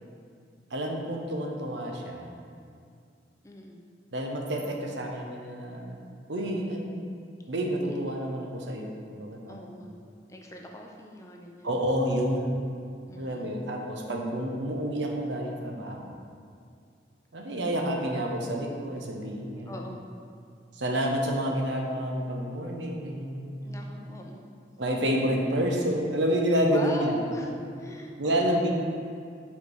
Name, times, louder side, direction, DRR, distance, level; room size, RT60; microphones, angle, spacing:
voice 1, 0.7-2.3 4.1-6.0 6.3-7.1 7.5-9.7 11.6-12.6 13.2-16.1 17.3-19.7 20.7-23.8 24.8-27.2 28.2-28.7, equal, 85° right, 1 dB, 0.9 m, -29 dB
voice 2, 3.4-3.9 7.9-8.0 9.5-10.0 10.3-11.8 13.1-13.6 19.7-20.0 23.6-24.6 26.7-28.6, left 1 dB, 15° left, 0 dB, 0.6 m, -41 dB
5.8 x 4.5 x 6.3 m, 2.4 s
head